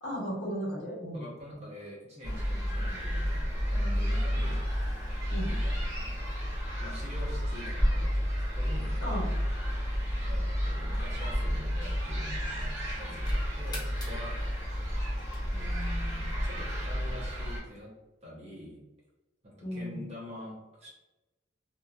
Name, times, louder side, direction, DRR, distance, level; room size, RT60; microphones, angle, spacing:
voice 1, 0.0-1.2 5.3-5.5 9.0-9.3 19.6-20.1, equal, 65° left, -5 dB, 1.1 m, -35 dB
voice 2, 1.1-4.6 5.4-5.8 6.8-8.9 10.2-14.3 15.5-17.9 18.2-18.8 19.4-20.9, left 1 dB, 35° right, -4 dB, 0.8 m, -45 dB
sound 1, 2.2-17.6, equal, 15° right, 1.1 m, -31 dB
sound 2, 13.1-15.8, left 2 dB, 20° left, 0.6 m, -48 dB
2.8 x 2.4 x 2.3 m, 1.1 s
head